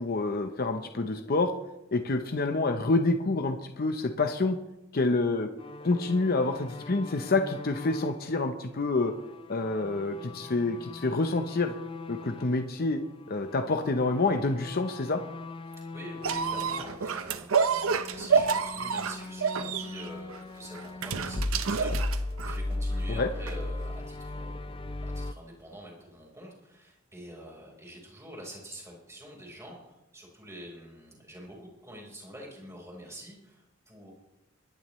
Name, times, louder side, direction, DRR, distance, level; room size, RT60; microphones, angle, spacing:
voice 1, 0.0-1.5 1.9-4.6 4.9-5.5 5.8-9.1 9.5-11.7 12.1-13.0 13.3-15.2 23.1-23.3, left 3 dB, 45° left, 6 dB, 0.8 m, -27 dB
sound 1, 5.6-12.7 13.0-17.1 17.7-25.3, left 2 dB, 25° left, 0.4 m, -38 dB
voice 2, 15.7-34.1, equal, 15° right, -2 dB, 4.3 m, -46 dB
sound 2, 16.2-22.7 23.5-23.6, right 6 dB, 85° right, 0.8 m, -28 dB
22.5 x 10.5 x 3.1 m, 0.93 s
head